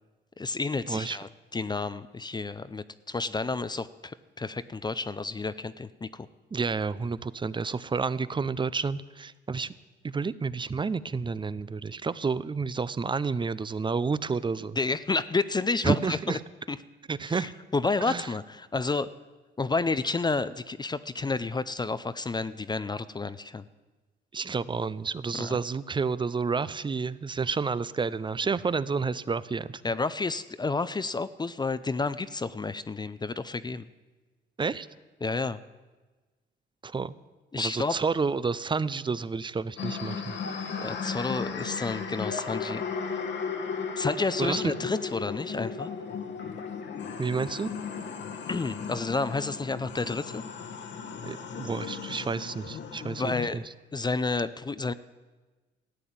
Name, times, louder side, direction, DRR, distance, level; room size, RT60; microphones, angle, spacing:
voice 1, 0.4-6.3 14.8-16.4 16.7-16.8 17.3-19.1 19.6-23.6 25.3-25.6 29.8-33.9 35.2-35.6 37.5-38.0 40.8-42.8 44.0-45.9 48.5-50.4 53.2-53.6 53.9-54.9, left 3 dB, 20° left, 14 dB, 0.5 m, -30 dB
voice 2, 0.9-1.2 6.5-9.7 10.0-14.8 15.8-16.4 17.1-17.5 18.1-18.3 24.3-29.8 34.6-34.9 36.8-37.1 37.6-40.4 44.4-44.7 47.2-47.7 51.2-53.6, right 4 dB, 25° right, 17 dB, 0.5 m, -30 dB
sound 1, 39.8-53.5, left 5 dB, 65° left, 1.5 m, -35 dB
14.0 x 9.1 x 8.8 m, 1.2 s
cardioid pair, 90°, 20 cm